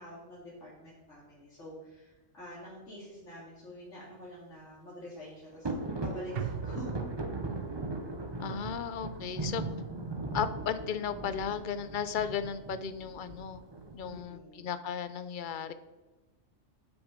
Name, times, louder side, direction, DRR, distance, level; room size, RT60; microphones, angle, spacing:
voice 1, 0.0-5.7 6.0-7.1 14.0-14.7, equal, 85° left, -9 dB, 2.9 m, -46 dB
sound 1, 5.6-14.2, right 2 dB, 25° right, 0.8 m, -38 dB
sound 2, 6.4-10.8 11.1-11.2, right 8 dB, 60° right, 0.7 m, -43 dB
voice 2, 8.4-9.6 10.3-13.6 13.9-15.7, left 7 dB, 50° left, 12 dB, 0.7 m, -35 dB
10.0 x 6.1 x 5.1 m, 1.1 s
omnidirectional pair, 1.2 m